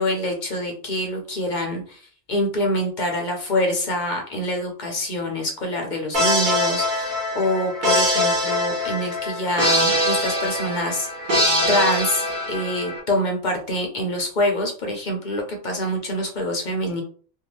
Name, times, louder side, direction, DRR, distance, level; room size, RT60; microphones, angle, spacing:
voice 1, 0.0-2.0 2.3-17.0, left 1 dB, 50° left, 2 dB, 0.6 m, -25 dB
sound 1, 6.1-13.0, left 1 dB, 45° right, 1.0 m, -22 dB
2.6 x 2.3 x 3.0 m, 0.44 s
omnidirectional pair, 1.3 m